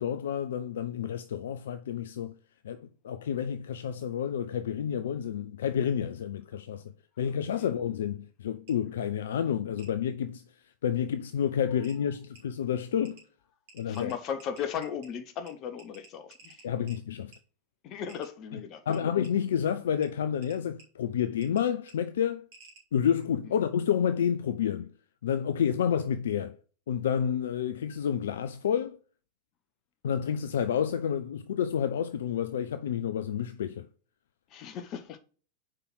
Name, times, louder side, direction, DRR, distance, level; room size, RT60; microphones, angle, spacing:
voice 1, 0.0-2.3 2.6-6.8 7.2-10.4 10.8-13.2 13.7-14.1 16.6-17.3 18.9-22.4 22.9-24.9 25.2-26.5 26.9-29.0 30.0-33.9, left 8 dB, 60° left, 0.4 m, -29 dB
sound 1, 8.7-8.8 9.8-9.9 11.3-11.4 11.8-12.0 12.4-12.5 13.0-13.2 13.7-15.1 15.5-15.6 15.8-17.0 17.3-17.4 18.1-18.3 18.9-19.3 20.0-20.1 20.4-20.8 21.4-21.6 21.9-22.0 22.5-22.8, right 3 dB, 50° right, 2.7 m, -53 dB
voice 2, 13.8-16.7 17.8-19.1 23.4-23.5 34.5-35.2, left 8 dB, 35° left, 1.0 m, -37 dB
4.9 x 4.8 x 6.0 m
figure-of-eight pair, 90°, 0 cm